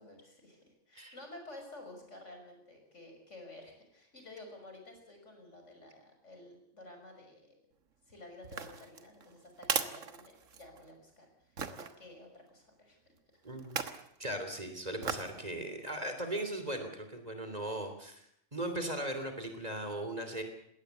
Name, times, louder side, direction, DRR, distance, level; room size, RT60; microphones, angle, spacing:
voice 1, 0.0-7.5 8.1-11.3 11.7-13.0 13.4-13.5, left 2 dB, 70° left, 3 dB, 6.3 m, -52 dB
sound 1, 8.4-10.9 11.6-11.9 13.6-14.1 15.0-15.4 15.9-16.0, right 6 dB, 85° right, 1.8 m, -37 dB
voice 2, 13.4-13.8 14.2-18.2 18.5-20.4, right 1 dB, 30° right, 7 dB, 3.2 m, -38 dB
21.5 x 17.5 x 8.3 m, 0.72 s
omnidirectional pair, 1.3 m